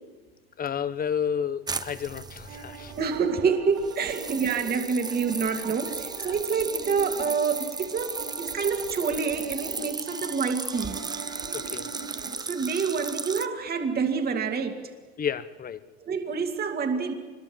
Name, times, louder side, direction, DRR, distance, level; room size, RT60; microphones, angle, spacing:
voice 1, 0.6-2.9 11.5-11.9 15.2-15.8, left 7 dB, 30° left, 14 dB, 1.2 m, -31 dB
sound 1, 1.7-3.3 3.8-13.5, right 4 dB, 15° right, 0.9 m, -36 dB
sound 2, 2.5-12.3, right 4 dB, 60° right, 4.8 m, -41 dB
voice 2, 3.0-11.1 12.4-14.9 16.0-17.1, right 5 dB, 30° right, 5 dB, 2.4 m, -27 dB
25.0 x 22.0 x 7.6 m, 1.3 s
supercardioid pair, 100°, 31 cm